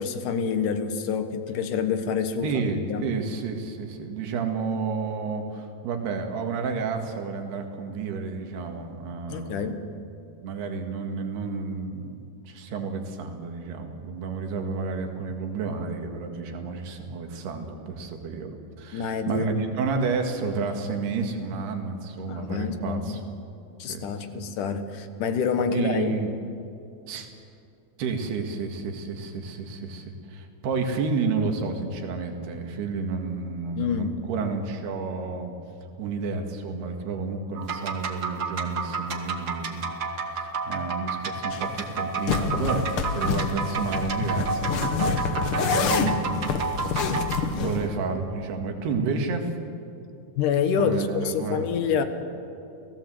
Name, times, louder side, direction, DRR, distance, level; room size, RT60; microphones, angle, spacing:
voice 1, 0.0-3.1 9.3-9.8 18.9-19.7 22.3-23.2 23.8-26.2 33.8-34.1 45.8-46.3 50.4-52.0, left 6 dB, 65° left, 9 dB, 2.5 m, -27 dB
voice 2, 2.4-9.7 10.4-23.2 23.8-24.1 24.3-24.4 25.7-26.3 27.1-27.3 28.0-35.5 36.0-46.4 47.6-49.5 50.8-51.7, right 4 dB, 90° right, 4 dB, 4.0 m, -31 dB
sound 1, 37.5-47.5, right 4 dB, 50° right, 1.1 m, -30 dB
sound 2, 41.5-41.6 42.3-47.9, left 5 dB, 85° left, 1.2 m, -27 dB
29.5 x 17.5 x 7.8 m, 2.7 s
omnidirectional pair, 4.5 m